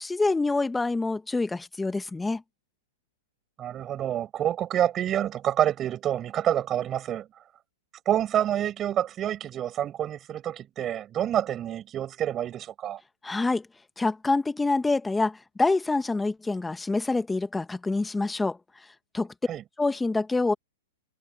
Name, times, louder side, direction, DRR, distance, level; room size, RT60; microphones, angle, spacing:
voice 1, 0.0-2.4 13.2-13.7 14.0-18.6 19.1-19.3 19.8-20.5, left 3 dB, 10° left, 1.3 m, -26 dB
voice 2, 3.6-7.3 8.1-13.0 19.5-19.6, right 11 dB, 25° right, 7.6 m, -27 dB
hypercardioid pair, 135°, 0 cm